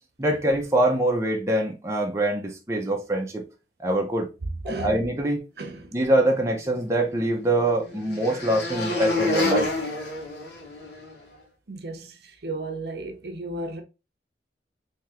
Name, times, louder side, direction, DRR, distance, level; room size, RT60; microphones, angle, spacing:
voice 1, 0.2-3.4 3.8-4.3 4.6-5.4 5.9-9.7, right 1 dB, 15° right, 0.6 m, -24 dB
voice 2, 5.6-5.9 11.7-13.8, right 2 dB, 65° right, 0.7 m, -34 dB
sound 1, 6.5-11.1, left 2 dB, 75° left, 1.4 m, -29 dB
3.5 x 2.9 x 2.9 m
head